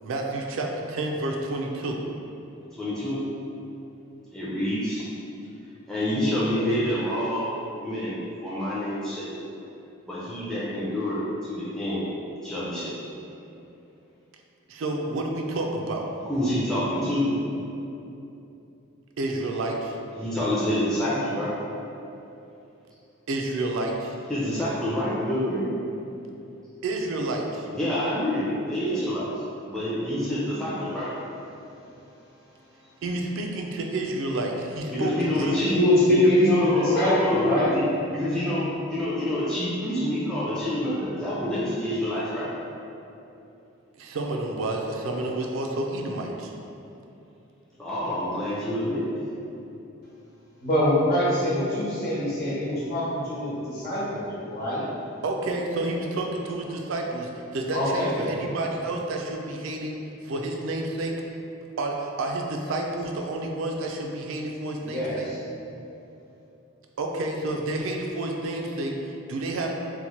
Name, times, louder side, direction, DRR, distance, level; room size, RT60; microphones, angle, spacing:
voice 1, 0.0-2.0 14.7-16.1 19.2-20.0 23.3-24.1 26.8-27.7 33.0-35.7 44.0-46.5 55.2-59.9 60.2-61.1 61.8-65.3 67.0-69.8, right 2 dB, 65° right, 1 dB, 0.3 m, -29 dB
voice 2, 2.8-3.2 4.3-5.0 5.9-7.5 7.8-9.3 10.1-11.2 11.5-12.0 12.4-13.0 16.3-17.3 20.2-21.5 24.3-25.6 27.7-29.3 29.6-31.1 34.9-35.8 36.2-37.8 38.1-42.5 47.8-49.3, left 1 dB, 5° left, -10 dB, 0.4 m, -27 dB
voice 3, 35.5-37.7 50.6-54.9 57.7-58.3 64.8-65.4, left 1 dB, 45° left, -8 dB, 1.0 m, -23 dB
2.9 x 2.1 x 4.1 m, 2.8 s
head